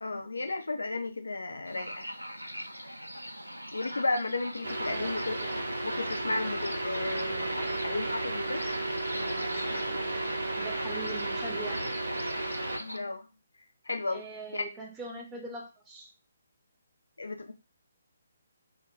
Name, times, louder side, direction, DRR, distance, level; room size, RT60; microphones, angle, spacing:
voice 1, 0.0-2.1 3.7-5.3 5.8-8.6 9.2-10.0 12.8-13.3 13.9-14.2 14.5-14.6 17.2-17.5, left 3 dB, 70° left, 5 dB, 0.5 m, -34 dB
sound 1, 1.6-13.0, equal, 90° right, 0.4 m, -42 dB
sound 2, 4.6-12.8, right 2 dB, 65° right, 0.8 m, -33 dB
voice 2, 4.9-5.5 10.5-11.9 14.1-16.1, right 2 dB, 15° right, 0 dB, 0.6 m, -42 dB
2.2 x 2.2 x 3.7 m, 0.28 s
figure-of-eight pair, 140°, 0 cm